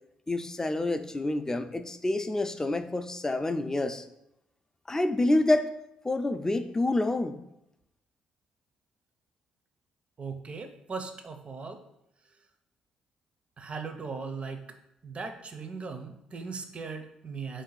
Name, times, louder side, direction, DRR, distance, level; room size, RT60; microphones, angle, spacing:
voice 1, 0.3-4.0 4.9-5.7 6.0-7.4, left 2 dB, 20° left, 9 dB, 0.4 m, -27 dB
voice 2, 10.2-11.8 13.6-14.6 15.0-17.6, right 4 dB, 40° right, 7 dB, 0.5 m, -38 dB
3.8 x 2.6 x 3.9 m, 0.83 s
supercardioid pair, 60°, 3 cm